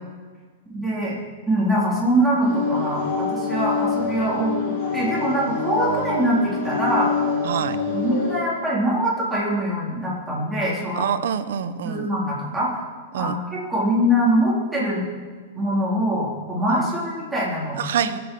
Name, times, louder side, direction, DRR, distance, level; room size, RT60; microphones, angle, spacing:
voice 1, 0.7-1.1 1.5-4.6 4.9-7.1 7.9-11.0 11.6-12.8 13.2-13.4 13.7-15.0 15.5-17.8, equal, 5° right, -7 dB, 3.7 m, -23 dB
sound 1, 2.4-8.4, left 4 dB, 40° left, 3.7 m, -26 dB
voice 2, 7.4-7.8 11.0-12.1 13.1-13.4 17.8-18.2, right 9 dB, 75° right, 11 dB, 1.0 m, -25 dB
23.5 x 8.4 x 5.5 m, 1.6 s
supercardioid pair, 155°, 0 cm